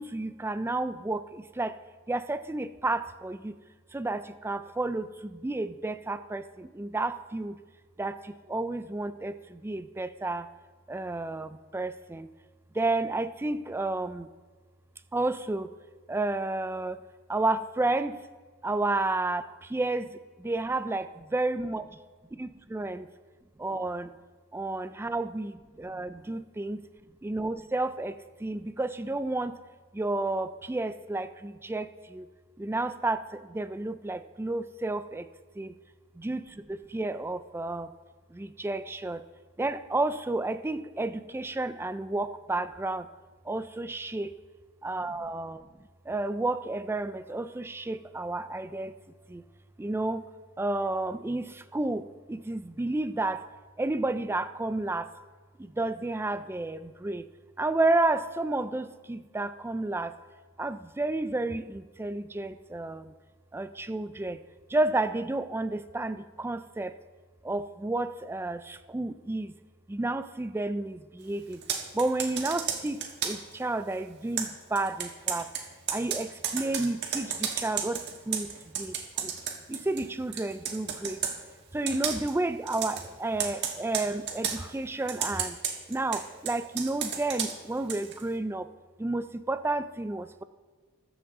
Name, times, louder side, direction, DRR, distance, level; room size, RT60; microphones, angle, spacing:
voice 1, 0.0-1.7 2.1-3.5 3.9-7.6 8.0-10.5 10.9-12.3 12.7-14.3 15.1-15.7 16.1-17.0 17.3-18.2 18.6-21.9 22.3-23.1 23.6-24.1 24.5-26.8 27.2-29.6 29.9-32.3 32.6-35.3 35.6-35.7 36.2-37.9 38.3-39.2 39.6-43.1 43.4-44.3 44.8-45.7 46.1-48.9 49.3-49.4 49.8-50.3 50.6-53.4 53.8-55.1 55.6-57.2 57.6-60.1 60.6-63.1 63.5-64.4 64.7-67.0 67.4-69.5 69.9-71.6 71.9-75.5 75.9-79.3 79.7-81.2 81.7-85.6 85.9-88.7 89.0-90.4, right 2 dB, 10° right, 12 dB, 0.3 m, -31 dB
Computer keyboard, 71.5-73.5 74.4-80.1 80.3-81.4 81.9-82.3 82.7-83.1 83.4-84.6 85.1-88.2, right 7 dB, 50° right, 1.4 m, -33 dB
20.0 x 7.2 x 3.6 m, 1.4 s
head